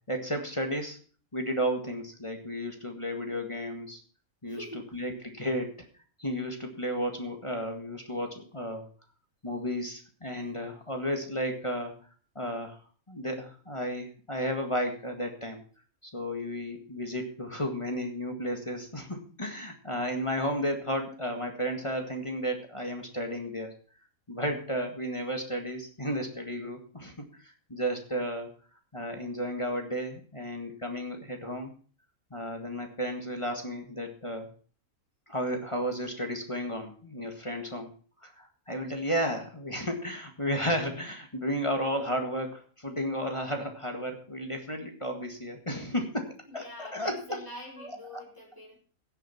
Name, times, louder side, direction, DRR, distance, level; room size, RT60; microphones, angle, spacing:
voice 1, 0.1-1.0 1.3-4.0 4.4-5.9 6.2-8.9 9.4-12.0 12.4-12.8 13.1-15.6 16.0-23.7 24.3-28.5 28.9-31.7 32.3-34.5 35.3-37.9 38.2-47.4 47.8-48.2, equal, 20° left, 4 dB, 1.9 m, -33 dB
voice 2, 4.4-4.9 46.4-48.8, equal, 15° right, -3 dB, 3.9 m, -45 dB
17.5 x 6.8 x 5.8 m, 0.42 s
omnidirectional pair, 1.5 m